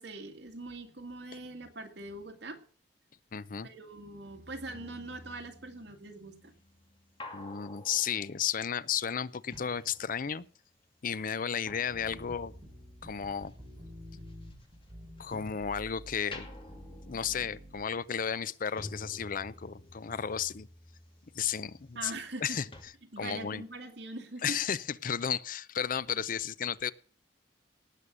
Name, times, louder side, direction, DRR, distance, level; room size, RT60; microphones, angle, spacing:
voice 1, 0.0-2.6 3.6-6.5 22.0-22.6 23.1-24.4, right 2 dB, 70° right, 5 dB, 2.2 m, -42 dB
voice 2, 3.3-3.7 7.3-10.5 11.0-12.5 13.0-13.5 15.2-16.5 17.1-20.7 21.3-22.1 22.4-22.7 23.2-23.6 24.4-26.9, left 7 dB, 50° left, 18 dB, 0.6 m, -33 dB
sound 1, 4.7-10.7 10.9-15.8 16.2-22.5 22.7-22.8, left 2 dB, 30° left, 2.4 m, -51 dB
sound 2, 11.9-17.9, equal, 30° right, 4.8 m, -49 dB
18.0 x 6.9 x 6.2 m, 0.43 s
head